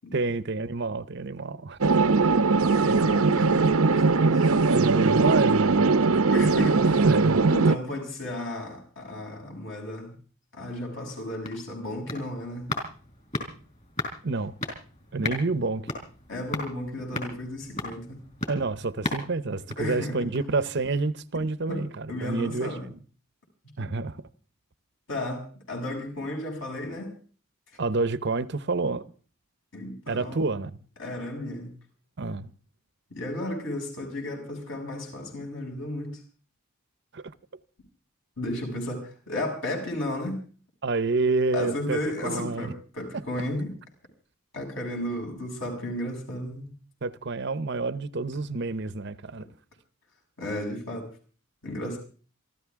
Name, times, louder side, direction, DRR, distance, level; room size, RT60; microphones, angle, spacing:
voice 1, 0.1-1.8 4.7-6.2 7.1-7.5 14.2-14.5 15.1-15.9 18.5-23.0 23.8-24.2 27.8-29.1 30.1-30.7 32.2-32.5 37.1-37.2 40.8-42.7 47.0-49.5, right 3 dB, 55° right, 0.7 m, -28 dB
sound 1, 1.8-7.8, right 4 dB, 85° right, 0.8 m, -20 dB
voice 2, 2.7-4.5 6.3-7.1 7.5-10.1 10.5-12.7 16.3-18.2 19.8-20.3 21.7-21.8 22.1-22.8 25.1-27.1 29.7-30.5 31.0-31.7 33.1-36.2 38.4-40.4 41.5-43.7 44.5-46.7 50.4-51.1 51.6-52.0, left 1 dB, 60° left, 7.0 m, -33 dB
sound 2, 11.1-20.6 21.0-21.1, left 2 dB, 35° left, 5.1 m, -37 dB
27.5 x 13.5 x 3.6 m
head